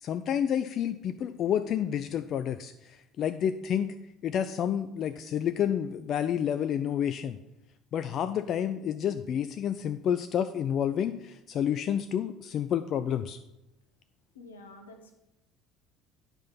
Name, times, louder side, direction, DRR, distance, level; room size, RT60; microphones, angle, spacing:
voice 1, 0.0-3.9 4.2-7.4 7.9-13.4, left 9 dB, 50° left, 10 dB, 0.4 m, -29 dB
voice 2, 14.3-15.1, left 2 dB, 80° left, 5 dB, 1.1 m, -48 dB
9.1 x 5.3 x 5.8 m, 0.91 s
figure-of-eight pair, 60°, 0 cm